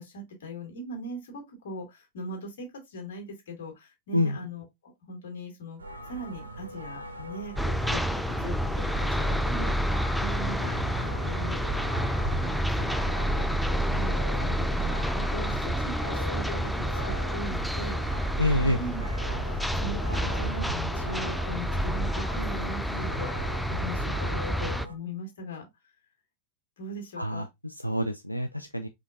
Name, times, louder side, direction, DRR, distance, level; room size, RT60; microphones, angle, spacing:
voice 1, 0.0-18.2 18.6-19.0 19.4-25.7 26.8-27.4, equal, 60° left, 2.1 m, -40 dB
sound 1, 5.8-24.9, right 2 dB, 75° right, 0.7 m, -39 dB
sound 2, 7.6-24.8, equal, ahead, 0.3 m, -29 dB
voice 2, 18.4-18.8 27.2-28.9, left 1 dB, 90° left, 0.3 m, -27 dB
4.9 x 3.7 x 2.6 m
figure-of-eight pair, 90°, 0 cm